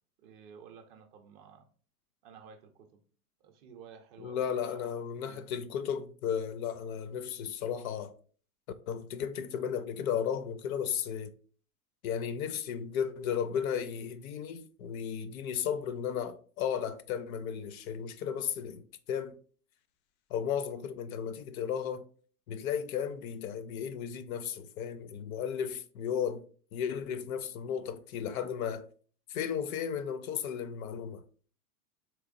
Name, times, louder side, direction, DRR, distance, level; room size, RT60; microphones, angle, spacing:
voice 1, 0.2-1.7 2.2-3.0 3.4-5.5, right 6 dB, 35° right, 0.4 m, -53 dB
voice 2, 4.2-8.1 8.9-11.3 12.0-19.4 20.3-22.1 22.5-26.5 26.7-28.8 29.3-31.2, left 8 dB, 60° left, 0.5 m, -34 dB
3.3 x 3.1 x 2.5 m
hypercardioid pair, 110°, 48 cm